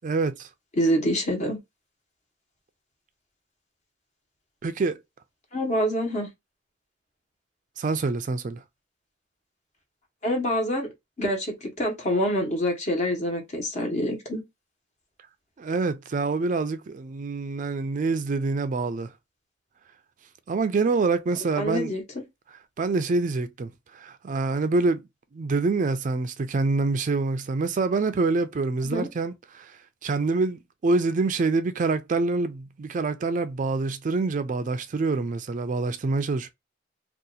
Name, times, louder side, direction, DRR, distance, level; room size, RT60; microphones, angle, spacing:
voice 1, 0.0-0.5 4.6-5.0 7.8-8.6 15.6-19.1 20.5-21.9 22.8-25.0 25.3-29.7 30.0-36.5, right 3 dB, 45° right, 0.4 m, -26 dB
voice 2, 0.8-1.6 5.5-6.3 10.2-10.9 11.2-14.4 21.5-22.2 28.8-29.1, equal, 40° left, 1.2 m, -26 dB
2.7 x 2.4 x 3.8 m
head